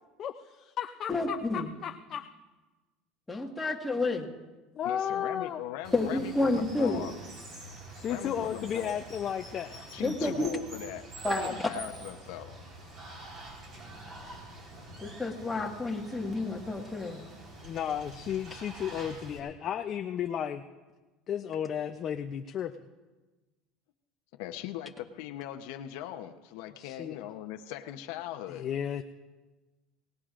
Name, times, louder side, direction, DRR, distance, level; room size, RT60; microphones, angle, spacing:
voice 1, 0.2-2.3 4.8-5.6 7.9-9.8 17.6-20.6 21.3-22.7 26.8-27.2 28.5-29.0, left 9 dB, 40° left, 6 dB, 0.5 m, -34 dB
voice 2, 1.1-1.7 3.3-4.3 5.9-7.0 10.0-10.5 11.2-11.6 15.0-17.2, left 2 dB, 10° left, 0 dB, 1.7 m, -30 dB
voice 3, 4.8-7.1 8.1-9.0 9.9-11.1 11.4-12.5 24.4-28.7, left 12 dB, 75° left, 6 dB, 0.8 m, -40 dB
Water, 5.8-19.4, right 1 dB, 40° right, 4.5 m, -46 dB
24.0 x 19.0 x 2.5 m, 1.2 s
supercardioid pair, 135°, 0 cm